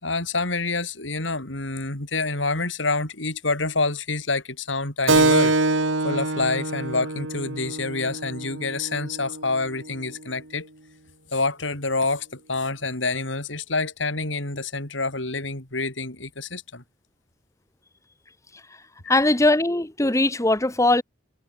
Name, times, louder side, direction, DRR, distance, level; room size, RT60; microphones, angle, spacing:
voice 1, 0.0-5.5 6.0-10.7 11.3-16.8 19.0-19.1, left 3 dB, 75° left, 5.4 m, -27 dB
Keyboard (musical), 5.1-10.2, right 2 dB, 80° right, 3.1 m, -25 dB
voice 2, 19.1-21.0, left 2 dB, 15° left, 1.2 m, -20 dB
head